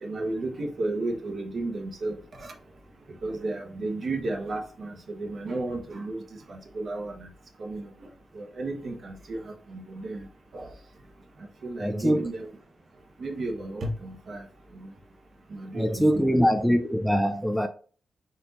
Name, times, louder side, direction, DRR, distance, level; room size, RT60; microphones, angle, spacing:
voice 1, 0.0-2.5 3.2-6.2 6.5-7.3 7.6-7.9 8.3-10.3 10.5-10.7 11.6-12.5 13.2-14.4 14.7-14.9 15.5-16.3, right 2 dB, 50° right, 1.0 m, -33 dB
voice 2, 11.8-12.3 15.7-17.7, equal, ahead, 0.3 m, -23 dB
4.3 x 2.6 x 4.1 m
cardioid pair, 105°, 0 cm